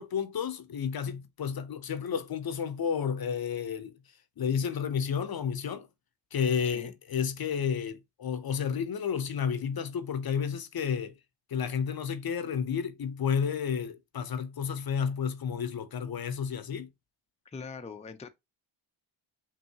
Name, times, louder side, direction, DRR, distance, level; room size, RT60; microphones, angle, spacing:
voice 1, 0.0-3.9 4.4-5.9 6.3-11.1 11.5-16.9, left 7 dB, 50° left, 0.7 m, -31 dB
voice 2, 17.5-18.3, left 5 dB, 15° left, 0.5 m, -42 dB
5.4 x 2.7 x 2.8 m
cardioid pair, 70°, 46 cm